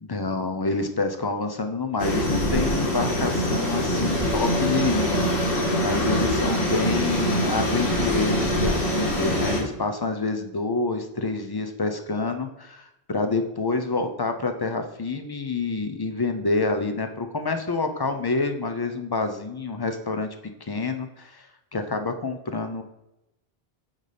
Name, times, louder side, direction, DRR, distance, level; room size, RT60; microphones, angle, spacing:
voice 1, 0.1-20.3 20.6-21.5 21.7-22.8, left 3 dB, 35° left, 6 dB, 0.4 m, -27 dB
sound 1, 2.0-9.6, equal, 90° left, 1.8 m, -24 dB
8.8 x 4.0 x 3.3 m, 0.91 s
omnidirectional pair, 1.1 m